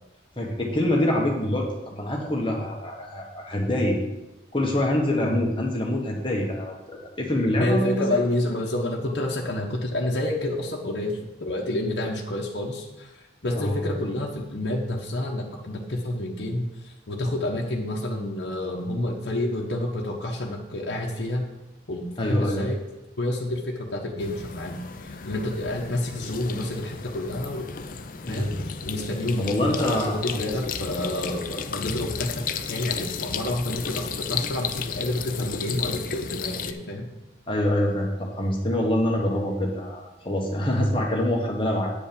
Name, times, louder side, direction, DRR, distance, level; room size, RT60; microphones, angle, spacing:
voice 1, 0.4-4.0 4.5-8.1 13.5-13.8 22.2-22.6 28.2-28.5 29.4-30.5 37.5-41.9, left 1 dB, 25° left, -1 dB, 1.6 m, -25 dB
voice 2, 7.6-13.1 13.4-21.5 21.9-22.8 23.2-24.8 25.2-27.7 28.3-37.1, left 1 dB, 60° left, -2 dB, 1.2 m, -29 dB
sound 1, 24.2-36.7, left 6 dB, 45° left, 0.5 m, -33 dB
9.2 x 5.2 x 7.0 m, 0.99 s
head